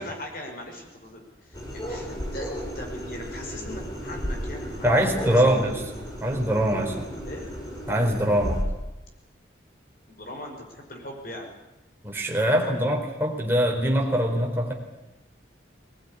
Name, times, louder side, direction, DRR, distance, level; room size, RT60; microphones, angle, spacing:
voice 1, 0.0-5.5 7.2-7.5 10.1-11.5, left 1 dB, 50° left, 1 dB, 5.3 m, -40 dB
sound 1, 1.5-8.6, equal, 20° left, 4.8 m, -34 dB
voice 2, 4.8-5.8 6.2-7.1 7.9-8.6 12.0-14.7, equal, 10° right, -1 dB, 4.2 m, -23 dB
20.0 x 19.5 x 9.9 m, 0.99 s
head